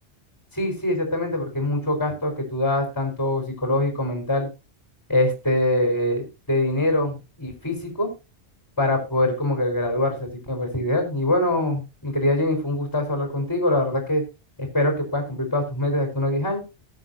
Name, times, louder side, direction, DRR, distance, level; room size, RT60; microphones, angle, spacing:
voice 1, 0.5-4.5 5.1-8.1 8.8-14.2 14.6-16.6, left 1 dB, 15° left, 3 dB, 4.6 m, -24 dB
19.5 x 7.8 x 2.8 m, 0.28 s
omnidirectional pair, 1.2 m